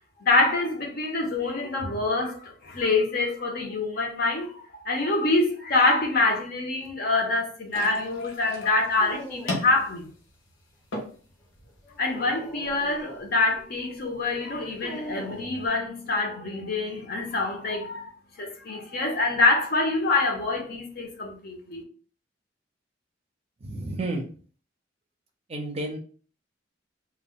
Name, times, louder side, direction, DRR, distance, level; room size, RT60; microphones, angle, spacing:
voice 1, 0.2-10.1 12.0-18.1 18.4-21.8, left 3 dB, 55° left, 0.6 m, -25 dB
sound 1, 7.7-15.7, left 2 dB, 85° left, 0.8 m, -40 dB
Dog, 9.0-9.9 11.8-13.3 14.8-15.6, right 1 dB, 5° left, 0.7 m, -41 dB
voice 2, 23.6-24.3 25.5-26.0, right 2 dB, 35° right, 0.5 m, -31 dB
2.2 x 2.1 x 3.6 m
head